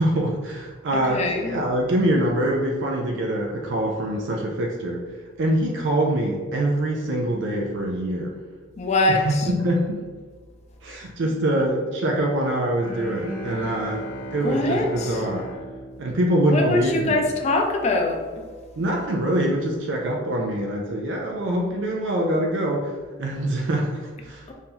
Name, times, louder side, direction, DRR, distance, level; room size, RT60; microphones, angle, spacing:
voice 1, 0.0-5.0 5.4-8.3 9.1-10.0 10.8-14.0 14.3-15.5 16.0-17.2 18.8-22.9 23.2-24.5, right 1 dB, 65° right, 0 dB, 0.4 m, -24 dB
voice 2, 0.9-1.5 8.8-9.5 14.4-15.2 16.5-18.4 24.5-24.6, left 2 dB, 35° left, 2 dB, 0.4 m, -23 dB
Bowed string instrument, 12.7-17.0, equal, 80° left, 1.0 m, -36 dB
2.8 x 2.7 x 3.7 m, 1.5 s
head